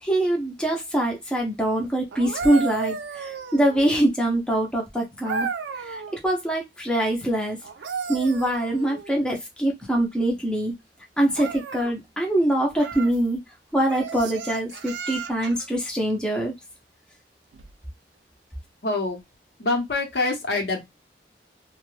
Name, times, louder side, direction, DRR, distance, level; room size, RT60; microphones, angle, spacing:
voice 1, 0.0-5.5 5.8-7.6 8.1-10.7 11.2-13.4 13.7-16.5, right 1 dB, 5° left, 0.5 m, -24 dB
sound 1, 2.1-4.1 5.2-6.2 7.6-9.2 11.3-11.9 12.8-13.2 13.9-15.7 17.5-17.7, right 6 dB, 85° right, 0.4 m, -33 dB
voice 2, 18.8-19.2 19.6-20.8, left 3 dB, 70° left, 0.9 m, -25 dB
2.4 x 2.1 x 3.0 m
head